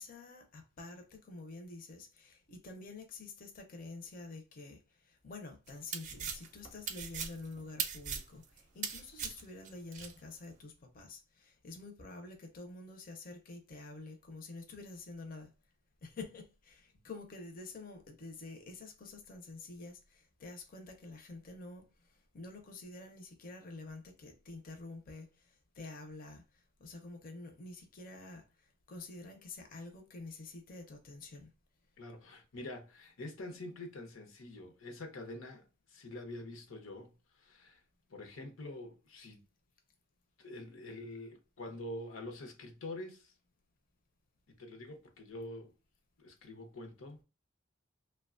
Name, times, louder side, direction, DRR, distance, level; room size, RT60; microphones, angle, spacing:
voice 1, 0.0-15.5 16.0-21.9 22.3-26.4 26.8-28.4 28.9-31.5, left 3 dB, 45° left, 0.5 m, -48 dB
sound 1, 5.7-10.1, right 7 dB, 40° right, 0.4 m, -39 dB
voice 2, 32.0-37.8 38.1-39.4 40.4-43.3 44.5-45.7 46.2-47.2, left 1 dB, 85° left, 0.7 m, -46 dB
2.8 x 2.2 x 2.3 m
head